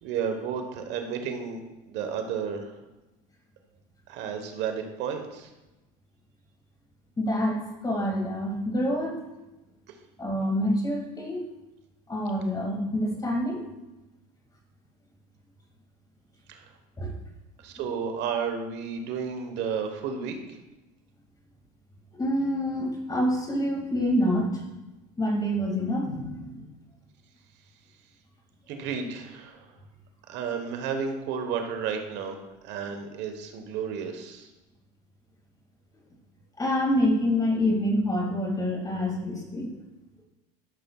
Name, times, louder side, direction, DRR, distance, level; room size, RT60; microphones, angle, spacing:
voice 1, 0.0-1.6 1.9-2.7 4.1-5.5 9.9-10.0 16.5-16.7 17.6-20.6 28.7-29.7 30.3-32.4 32.6-34.5, right 6 dB, 60° right, 5 dB, 1.2 m, -32 dB
voice 2, 7.2-9.2 10.2-11.4 12.1-13.6 17.0-17.1 22.2-24.7 25.2-26.6 36.6-39.7, equal, 20° left, 1 dB, 2.1 m, -27 dB
13.0 x 6.8 x 2.4 m, 1.0 s
supercardioid pair, 115°, 21 cm